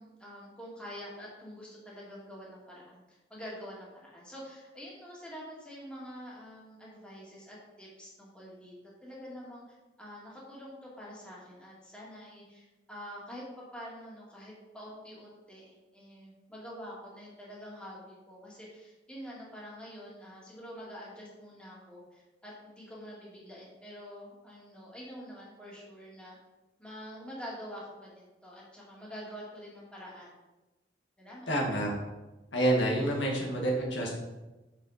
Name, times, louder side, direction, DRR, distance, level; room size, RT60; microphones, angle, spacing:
voice 1, 0.0-8.7 9.0-26.4 26.8-30.3 31.2-31.5, equal, 5° left, -5 dB, 2.2 m, -46 dB
voice 2, 31.5-31.9 32.5-34.1, right 1 dB, 85° left, -1 dB, 1.9 m, -28 dB
6.7 x 5.9 x 5.0 m, 1.1 s
head